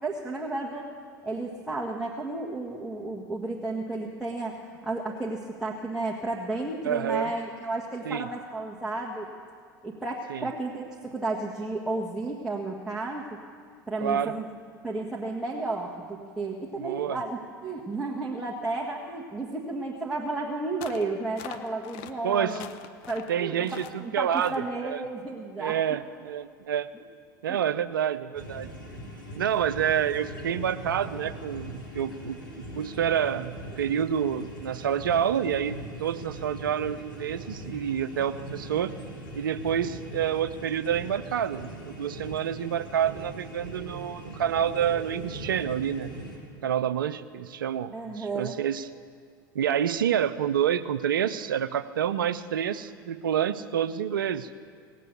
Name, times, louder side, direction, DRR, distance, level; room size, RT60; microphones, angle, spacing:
voice 1, 0.0-0.9 1.2-9.3 9.8-13.4 13.9-14.5 14.8-22.7 23.1-23.7 24.0-26.0 26.9-27.0 27.5-27.6 47.9-48.6, right 2 dB, 5° right, -4 dB, 1.7 m, -32 dB
voice 2, 6.8-7.3 8.0-8.3 10.3-10.5 14.0-14.3 16.8-17.2 22.2-22.6 23.3-25.0 25.6-26.9 27.4-28.7 29.4-32.4 32.8-38.9 39.3-46.1 46.6-48.9 49.5-54.6, right 9 dB, 80° right, 14 dB, 0.6 m, -28 dB
sound 1, 20.8-21.1 21.4-22.1 22.5-23.3 23.6-24.0 24.3-24.6, left 11 dB, 60° left, 0.9 m, -43 dB
sound 2, 28.3-46.4, equal, 80° left, 3.0 m, -41 dB
18.5 x 7.6 x 8.3 m, 2.2 s
hypercardioid pair, 80°, 11 cm